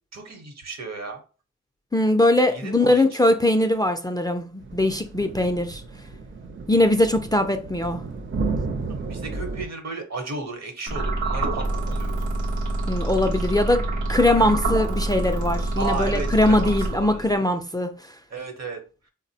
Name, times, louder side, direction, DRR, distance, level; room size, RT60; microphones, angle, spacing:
voice 1, 0.1-1.2 2.5-3.1 8.8-12.4 14.4-14.5 15.8-17.3 18.3-18.8, right 3 dB, 65° right, 0.9 m, -34 dB
voice 2, 1.9-5.8 6.7-8.0 12.9-13.8 14.1-17.9, left 1 dB, 15° left, 0.3 m, -21 dB
sound 1, 4.6-9.7, right 3 dB, 45° right, 0.5 m, -32 dB
sound 2, 10.9-17.4, right 2 dB, 90° right, 0.8 m, -26 dB
3.7 x 2.0 x 2.7 m
cardioid pair, 45°, 29 cm